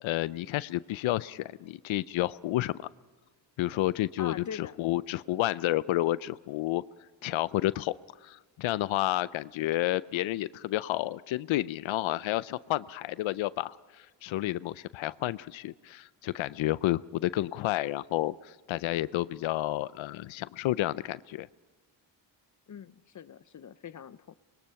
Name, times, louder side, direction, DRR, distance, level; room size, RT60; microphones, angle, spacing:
voice 1, 0.0-2.9 3.6-6.8 7.2-7.9 8.2-21.5, left 16 dB, 90° left, 17 dB, 0.6 m, -30 dB
voice 2, 4.2-4.8 22.7-24.3, left 8 dB, 40° left, 16 dB, 0.6 m, -42 dB
25.0 x 21.0 x 5.7 m, 1.4 s
cardioid pair, 95°, 45 cm